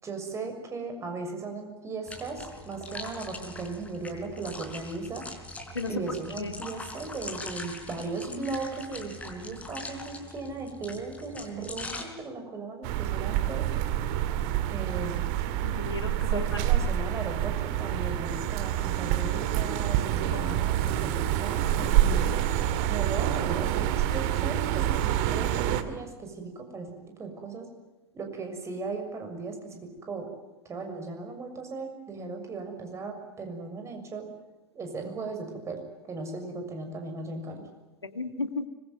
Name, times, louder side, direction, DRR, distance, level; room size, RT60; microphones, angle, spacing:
voice 1, 0.0-5.3 5.9-13.7 14.7-15.3 16.3-22.4 22.9-27.7 28.1-30.3 30.6-34.3 34.7-37.7, right 3 dB, 20° right, 4 dB, 6.7 m, -37 dB
sound 1, 2.1-12.0, left 2 dB, 10° left, 4.3 m, -42 dB
sound 2, 12.8-25.8, right 11 dB, 45° right, 2.2 m, -27 dB
voice 2, 15.6-16.6 20.3-20.6 38.0-38.7, left 3 dB, 80° left, 9 dB, 2.1 m, -34 dB
25.0 x 22.5 x 9.2 m, 1.1 s
figure-of-eight pair, 90°, 13 cm